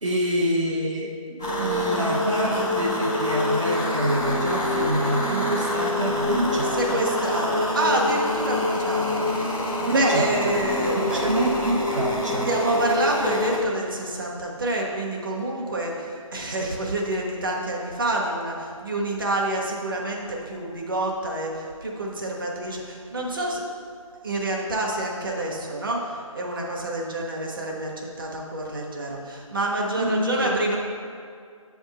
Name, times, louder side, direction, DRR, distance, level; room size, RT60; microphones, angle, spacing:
voice 1, 0.0-7.0 9.8-12.5 29.9-30.8, right 1 dB, 60° right, -3 dB, 0.9 m, -27 dB
sound 1, 1.4-13.6, left 1 dB, 5° left, 0.4 m, -25 dB
voice 2, 6.7-11.5 12.5-23.6 24.2-30.8, right 1 dB, 40° right, -2 dB, 1.2 m, -28 dB
8.5 x 3.6 x 5.5 m, 2.3 s
figure-of-eight pair, 155°, 18 cm